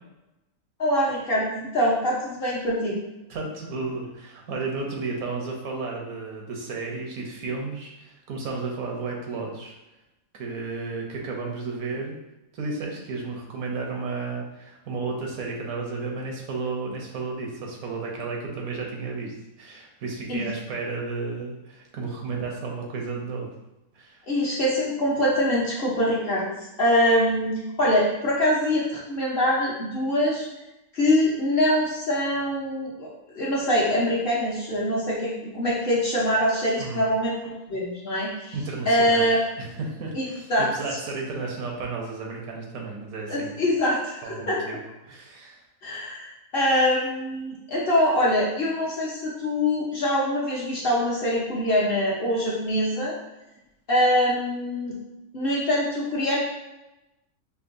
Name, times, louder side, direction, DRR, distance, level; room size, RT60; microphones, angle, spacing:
voice 1, 0.8-3.0 20.3-20.4 24.3-26.5 26.8-30.5 30.9-38.5 38.9-39.5 40.1-40.2 40.5-41.0 43.3-44.6 45.8-53.1 53.9-54.9 55.3-56.4, equal, 45° left, -5 dB, 0.9 m, -24 dB
voice 2, 3.3-9.7 10.3-12.2 12.5-23.5 23.9-24.2 36.8-37.1 38.5-43.5 44.2-44.8 45.0-45.6, right 4 dB, 85° right, 0 dB, 1.2 m, -33 dB
5.4 x 2.2 x 2.5 m, 0.95 s
omnidirectional pair, 1.5 m